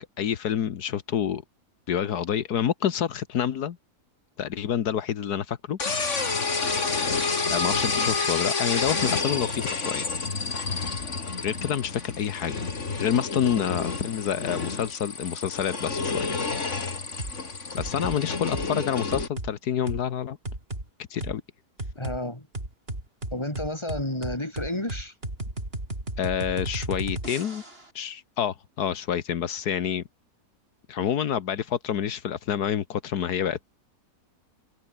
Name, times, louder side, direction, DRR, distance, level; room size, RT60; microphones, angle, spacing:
voice 1, 0.2-1.4 1.9-3.8 4.4-5.8 7.5-10.0 11.4-12.7 13.0-16.4 17.7-20.4 21.1-21.4 26.2-27.6 27.9-30.0 30.9-33.7, left 9 dB, 85° left, 1.7 m, -28 dB
sound 1, 5.8-19.3, left 4 dB, 50° left, 2.8 m, -29 dB
sound 2, 17.2-17.4 17.8-18.2 18.5-18.7 19.1-19.5 19.9-20.0 20.4-20.8 21.2-21.3 21.8-22.2 22.5-27.8, right 2 dB, 40° right, 5.6 m, -34 dB
voice 2, 22.0-22.5 23.3-25.1, left 1 dB, 15° left, 4.5 m, -31 dB
omnidirectional pair, 1.6 m